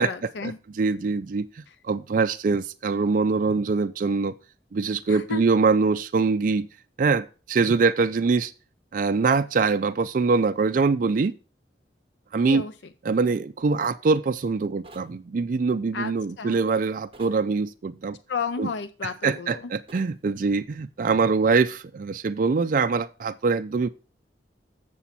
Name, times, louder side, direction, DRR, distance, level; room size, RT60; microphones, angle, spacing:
voice 1, 0.0-0.6 5.1-5.4 12.5-12.7 15.9-16.6 18.3-19.7, left 5 dB, 80° left, 0.5 m, -32 dB
voice 2, 0.8-4.3 4.7-6.7 7.0-8.5 8.9-11.3 12.3-12.6 13.1-18.2 18.6-18.7 19.2-23.9, right 4 dB, 50° right, 0.4 m, -23 dB
sound 1, 14.8-15.1 17.1-17.4 19.9-20.1, right 2 dB, 30° right, 1.1 m, -47 dB
7.4 x 7.0 x 4.2 m
head